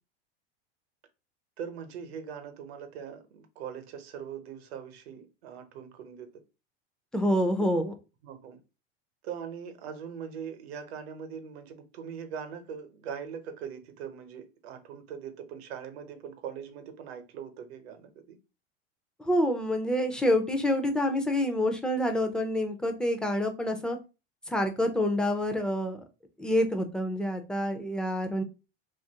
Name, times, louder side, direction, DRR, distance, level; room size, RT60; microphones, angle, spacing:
voice 1, 1.6-6.3 8.2-8.6 9.2-18.4, right 7 dB, 75° right, 7 dB, 0.8 m, -41 dB
voice 2, 7.1-7.9 19.2-24.0 24.5-26.0 26.4-28.4, left 1 dB, 5° left, 5 dB, 0.4 m, -27 dB
2.9 x 2.5 x 2.8 m, 0.29 s
supercardioid pair, 115°, 31 cm